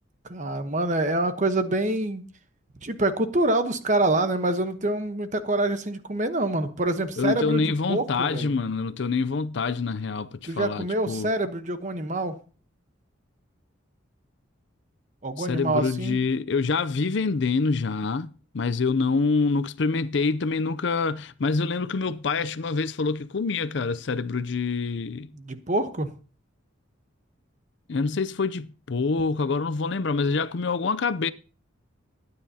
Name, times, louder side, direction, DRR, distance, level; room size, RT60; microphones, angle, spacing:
voice 1, 0.3-2.3 2.8-8.5 10.4-12.4 15.2-16.2 25.3-26.1, right 2 dB, 35° right, 1.0 m, -26 dB
voice 2, 7.2-11.3 15.4-18.3 18.5-25.3 27.9-31.3, left 4 dB, 60° left, 0.5 m, -26 dB
21.5 x 9.6 x 2.8 m
head